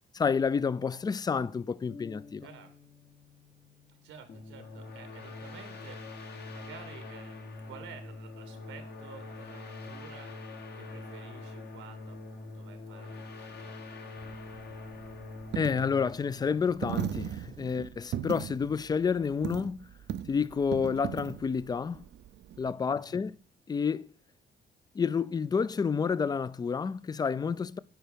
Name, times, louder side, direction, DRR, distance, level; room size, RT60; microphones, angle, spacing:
voice 1, 0.1-2.5 15.5-19.9 20.3-22.1 22.6-23.3 23.7-24.1 24.9-27.8, left 6 dB, 20° left, 0.3 m, -29 dB
sound 1, 1.9-5.7, left 4 dB, 90° left, 1.6 m, -54 dB
voice 2, 2.4-2.9 3.9-10.4 10.7-13.8 22.8-23.4, right 7 dB, 90° right, 1.4 m, -52 dB
sound 2, 4.3-17.6, left 3 dB, 55° left, 1.3 m, -44 dB
Coin (dropping), 14.2-22.7, right 10 dB, 60° right, 0.5 m, -39 dB
9.1 x 4.6 x 5.1 m
cardioid pair, 90°, 20 cm